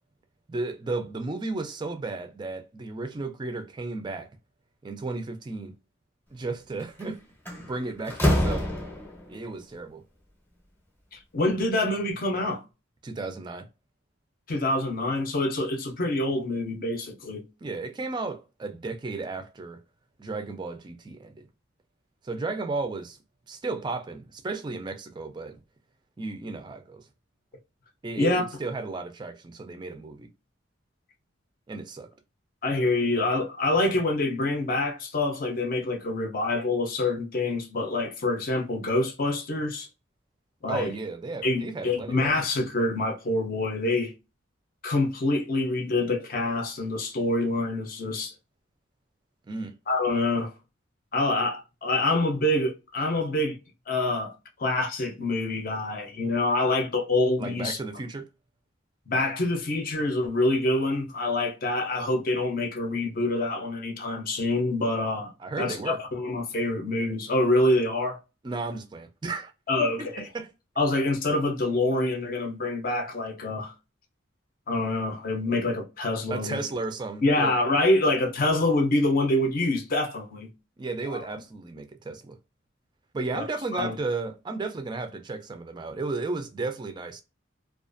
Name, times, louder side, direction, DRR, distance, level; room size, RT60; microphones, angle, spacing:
voice 1, 0.5-4.3 4.8-5.7 6.3-7.2 7.6-8.7 9.3-10.0 13.0-13.7 17.6-19.8 20.2-21.5 22.2-23.2 23.5-25.6 26.2-27.0 28.0-30.3 31.7-32.1 40.7-42.3 49.5-49.7 57.4-58.3 65.4-66.0 68.4-69.5 69.8-70.1 70.3-70.5 76.3-77.5 80.8-82.4 83.1-87.2, right 3 dB, 20° right, 0.3 m, -34 dB
Slam, 6.8-7.0 7.5-9.3, equal, 10° left, 0.7 m, -26 dB
voice 2, 11.1-12.6 14.5-17.4 28.2-28.5 32.6-39.9 40.6-40.9 41.4-44.1 44.8-48.3 49.9-50.5 51.1-53.6 53.9-54.3 54.6-57.8 59.1-65.3 65.6-68.2 69.7-70.3 70.8-73.7 74.7-76.6 77.2-80.5 81.1-81.2 83.3-83.4 83.7-83.9, left 2 dB, 45° left, 0.6 m, -26 dB
2.4 x 2.3 x 2.4 m
head